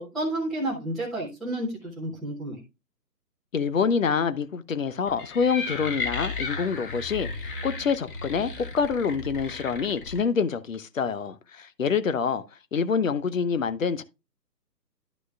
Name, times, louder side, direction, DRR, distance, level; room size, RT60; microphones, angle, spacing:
voice 1, 0.0-2.6, right 1 dB, ahead, 0.8 m, -31 dB
voice 2, 3.5-12.4 12.7-14.0, left 6 dB, 50° left, 0.9 m, -26 dB
sound 1, 5.1-10.2, left 3 dB, 30° left, 1.7 m, -34 dB
12.0 x 6.1 x 2.3 m
figure-of-eight pair, 145°, 50 cm